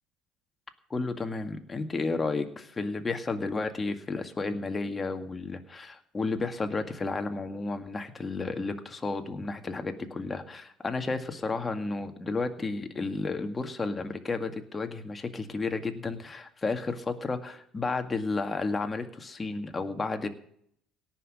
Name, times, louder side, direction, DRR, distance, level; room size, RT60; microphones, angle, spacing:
voice 1, 0.9-20.3, left 3 dB, 25° left, 6 dB, 2.0 m, -32 dB
17.5 x 6.1 x 8.8 m, 0.65 s
hypercardioid pair, 70°, 0 cm